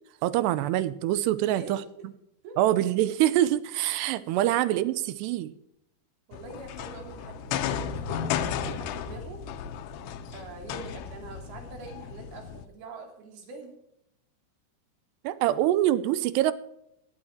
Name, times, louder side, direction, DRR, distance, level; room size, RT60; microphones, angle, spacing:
voice 1, 0.2-1.8 2.6-5.5 15.2-16.5, right 13 dB, 85° right, 15 dB, 2.8 m, -25 dB
voice 2, 1.3-1.8 2.4-2.6 6.3-9.4 10.3-13.8 15.4-15.6, right 4 dB, 65° right, 3 dB, 4.7 m, -44 dB
sound 1, 6.3-12.6, left 8 dB, 80° left, 3.0 m, -34 dB
17.0 x 11.0 x 4.5 m, 0.79 s
omnidirectional pair, 4.9 m